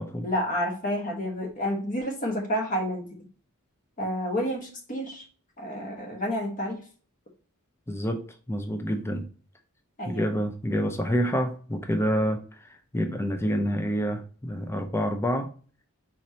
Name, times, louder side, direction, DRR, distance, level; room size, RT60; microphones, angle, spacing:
voice 1, 0.2-3.1 4.0-5.2 5.6-6.8 10.0-10.3, equal, 35° left, 2 dB, 1.2 m, -29 dB
voice 2, 7.9-8.2 8.5-9.2 10.0-15.6, equal, 10° left, 6 dB, 0.5 m, -28 dB
4.5 x 4.2 x 2.7 m, 0.41 s
head